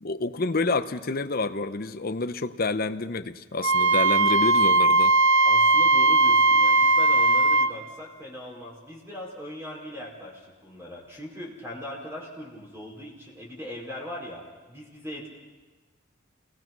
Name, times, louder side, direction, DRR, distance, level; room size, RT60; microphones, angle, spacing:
voice 1, 0.0-5.1, left 3 dB, 45° left, 10 dB, 0.8 m, -28 dB
Wind instrument woodwind instrument, 3.6-7.7, right 2 dB, 65° right, 0.8 m, -19 dB
voice 2, 5.4-15.3, left 1 dB, 10° right, -2 dB, 4.9 m, -40 dB
28.0 x 20.0 x 6.1 m, 1.2 s
head